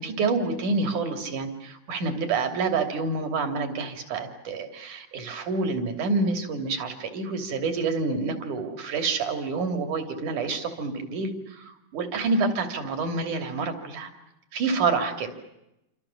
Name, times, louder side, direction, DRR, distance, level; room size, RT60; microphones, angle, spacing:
voice 1, 0.0-14.1 14.5-15.3, right 4 dB, 80° right, 7 dB, 4.4 m, -28 dB
28.5 x 26.5 x 7.3 m, 0.87 s
omnidirectional pair, 3.5 m